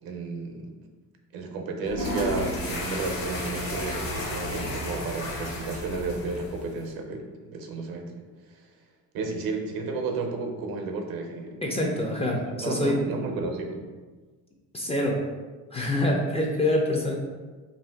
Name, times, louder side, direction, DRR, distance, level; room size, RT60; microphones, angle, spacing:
voice 1, 0.0-0.7 1.3-8.1 8.5-8.7 9.1-13.8, right 3 dB, 65° right, 3 dB, 0.7 m, -32 dB
sound 1, 1.8-6.9, left 1 dB, 60° left, 1.3 m, -33 dB
voice 2, 11.6-13.0 14.7-15.2 15.7-17.2, left 1 dB, 15° left, -1 dB, 0.4 m, -25 dB
2.7 x 2.4 x 3.4 m, 1.4 s
supercardioid pair, 85°, 38 cm